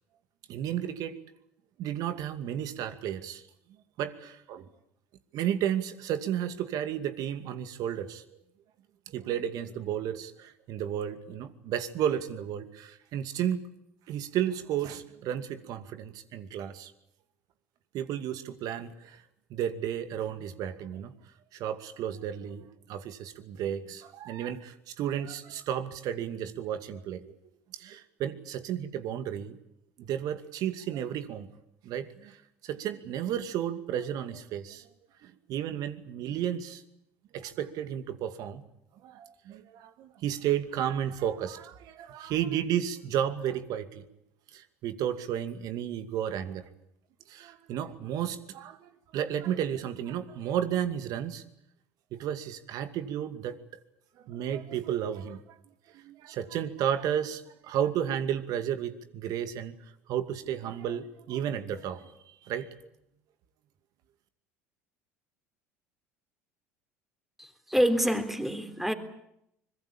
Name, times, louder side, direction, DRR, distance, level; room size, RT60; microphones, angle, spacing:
voice 1, 0.5-1.2 1.8-3.4 4.0-4.7 5.3-8.2 9.1-13.6 14.1-16.9 17.9-19.2 19.5-21.1 21.5-27.3 27.7-29.6 30.0-31.5 31.8-32.4 32.6-34.9 35.2-36.8 37.3-38.6 39.0-44.1 44.5-46.7 47.3-51.4 52.1-53.6 54.2-55.6 55.9-59.7 60.1-62.1 62.4-62.7, right 10 dB, 55° right, 10 dB, 2.4 m, -33 dB
voice 2, 67.4-68.9, equal, 5° right, 8 dB, 3.7 m, -27 dB
24.5 x 22.0 x 8.7 m, 0.78 s
hypercardioid pair, 70°, 7 cm